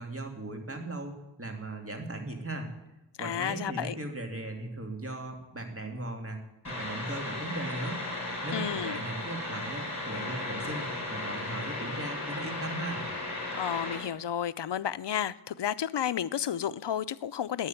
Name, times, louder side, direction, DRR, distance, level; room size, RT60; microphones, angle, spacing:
voice 1, 0.0-2.7 3.2-8.0 8.4-13.0, right 2 dB, 30° right, 2.4 m, -38 dB
voice 2, 3.2-4.0 8.5-9.0 13.6-17.7, left 9 dB, 70° left, 0.6 m, -32 dB
sound 1, 6.6-14.0, left 2 dB, 40° left, 6.6 m, -36 dB
11.5 x 9.6 x 9.1 m
wide cardioid pair, 85°, 44 cm